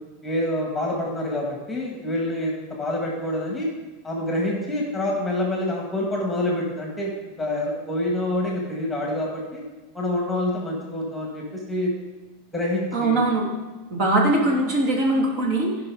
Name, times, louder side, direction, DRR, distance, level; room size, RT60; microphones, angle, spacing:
voice 1, 0.2-3.7 4.0-9.6 9.9-11.9 12.5-13.2, left 1 dB, 5° left, -2 dB, 1.7 m, -27 dB
voice 2, 12.9-13.4 13.9-15.7, right 2 dB, 45° right, -1 dB, 2.8 m, -21 dB
15.0 x 5.4 x 4.9 m, 1.2 s
supercardioid pair, 150°, 0 cm